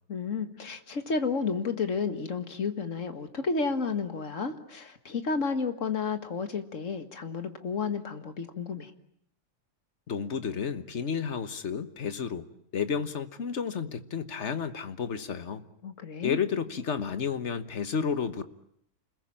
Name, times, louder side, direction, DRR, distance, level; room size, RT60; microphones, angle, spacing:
voice 1, 0.1-8.9 15.8-16.4, left 4 dB, 80° left, 8 dB, 2.1 m, -31 dB
voice 2, 10.1-15.6 16.2-18.4, left 6 dB, 65° left, 11 dB, 1.6 m, -31 dB
29.0 x 21.0 x 8.7 m, 0.73 s
omnidirectional pair, 1.3 m